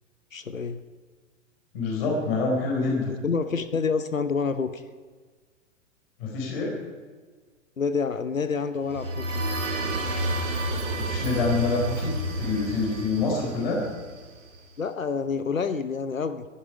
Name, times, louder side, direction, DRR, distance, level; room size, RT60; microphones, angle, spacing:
voice 1, 0.3-0.8 3.1-4.8 7.8-9.4 13.3-13.4 14.8-16.5, left 5 dB, 85° left, 11 dB, 0.9 m, -28 dB
voice 2, 1.7-3.1 6.2-6.8 11.0-13.8, left 3 dB, 45° left, -1 dB, 4.5 m, -26 dB
sound 1, 8.8-14.6, right 1 dB, 70° right, 3.7 m, -30 dB
16.0 x 11.5 x 5.0 m, 1.5 s
figure-of-eight pair, 105°, 39 cm